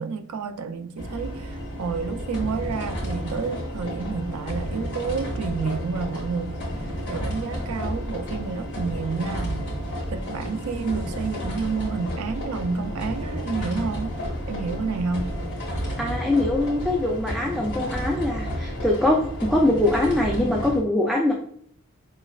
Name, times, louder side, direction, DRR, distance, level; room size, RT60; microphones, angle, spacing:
voice 1, 0.0-6.6 7.1-9.7 10.1-14.1 14.5-15.3, right 4 dB, 85° right, 0.4 m, -30 dB
sound 1, 1.0-20.8, equal, 55° left, 1.5 m, -31 dB
voice 2, 16.0-21.3, left 1 dB, ahead, 0.3 m, -23 dB
4.9 x 3.1 x 2.3 m
head